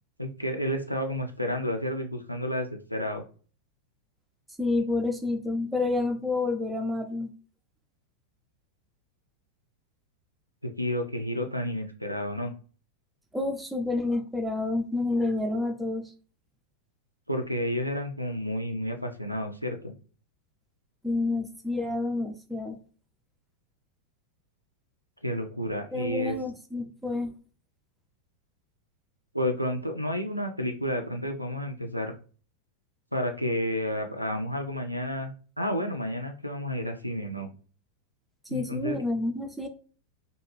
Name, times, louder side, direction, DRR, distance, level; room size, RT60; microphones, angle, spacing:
voice 1, 0.2-3.2 10.6-12.5 17.3-19.9 25.2-26.3 29.3-32.1 33.1-37.5 38.5-39.0, equal, 90° right, 5 dB, 0.3 m, -31 dB
voice 2, 4.6-7.3 13.3-16.1 21.0-22.8 25.9-27.3 38.5-39.7, left 2 dB, 5° right, 4 dB, 0.4 m, -29 dB
2.4 x 2.3 x 3.0 m, 0.39 s
figure-of-eight pair, 90°, 0 cm